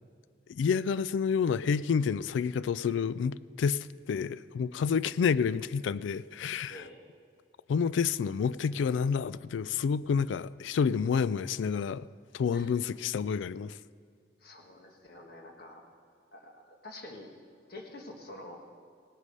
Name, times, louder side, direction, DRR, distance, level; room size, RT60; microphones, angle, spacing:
voice 1, 0.5-6.8 7.7-12.1 12.3-13.8, left 6 dB, 85° left, 0.3 m, -29 dB
voice 2, 6.7-7.0 12.5-12.7 14.4-15.8 16.3-17.3 17.7-18.6, left 1 dB, 55° left, 1.6 m, -47 dB
17.5 x 8.2 x 5.4 m
head